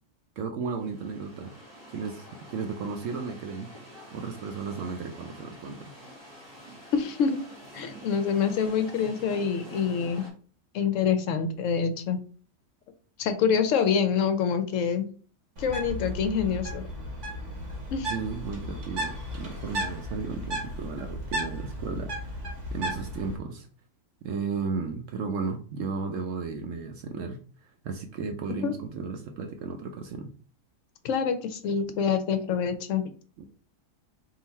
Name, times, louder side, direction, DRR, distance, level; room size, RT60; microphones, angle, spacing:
voice 1, 0.4-1.5 1.9-5.9 18.1-23.7 24.2-30.3 33.4-33.5, right 5 dB, 65° right, 5 dB, 0.8 m, -34 dB
sound 1, 0.6-10.3, equal, 20° right, 1.3 m, -47 dB
voice 2, 6.9-7.4 7.7-10.2 10.7-12.2 13.2-15.1 15.6-16.9 17.9-18.1 28.6-28.7 31.0-33.0, left 6 dB, 65° left, 9 dB, 0.8 m, -26 dB
Bird, 15.6-23.4, equal, 50° right, 1.5 m, -35 dB
3.9 x 2.5 x 4.1 m, 0.42 s
omnidirectional pair, 1.6 m